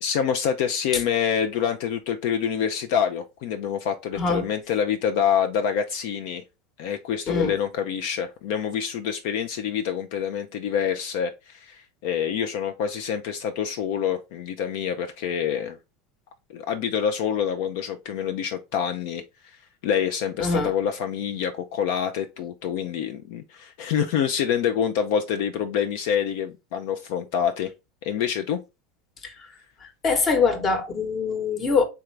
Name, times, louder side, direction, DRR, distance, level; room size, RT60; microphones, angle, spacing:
voice 1, 0.0-6.4 6.8-15.8 16.5-27.7 28.0-28.6, left 8 dB, 65° left, 0.5 m, -26 dB
voice 2, 4.1-4.5 7.3-7.5 20.4-20.7 29.2-29.3 29.8-31.9, left 4 dB, 35° left, 1.1 m, -23 dB
3.7 x 3.4 x 3.2 m
supercardioid pair, 110°, 0 cm